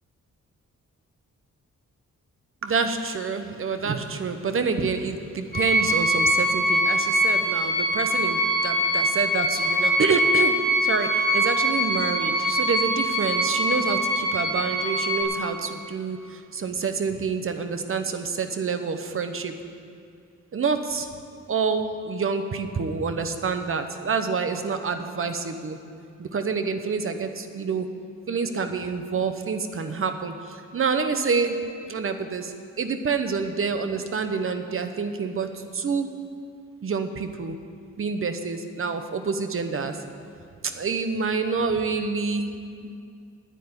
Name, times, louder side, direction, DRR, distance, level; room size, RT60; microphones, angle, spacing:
voice 1, 2.6-19.5 20.5-21.1 21.5-25.8 26.2-27.9 28.3-31.6 31.8-36.1 36.8-37.6 38.0-40.0 40.6-42.5, right 5 dB, 45° right, 7 dB, 0.9 m, -27 dB
sound 1, 5.5-15.2, equal, 30° left, 3.5 m, -23 dB
10.0 x 9.2 x 9.5 m, 2.3 s
wide cardioid pair, 170°, 30 cm